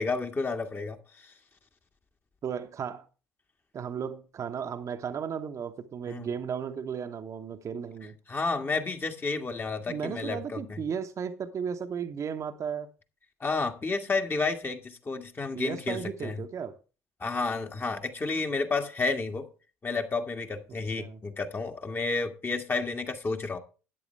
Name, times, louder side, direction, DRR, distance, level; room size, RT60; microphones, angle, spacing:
voice 1, 0.0-1.3 6.1-6.3 8.3-10.6 13.4-16.4 17.2-19.5 19.8-23.6, left 3 dB, 30° left, 1.8 m, -31 dB
voice 2, 2.4-3.1 3.7-8.1 9.9-12.9 15.5-16.8 21.0-21.2, right 7 dB, 45° right, 1.1 m, -35 dB
13.0 x 9.2 x 3.4 m
figure-of-eight pair, 55°, 8 cm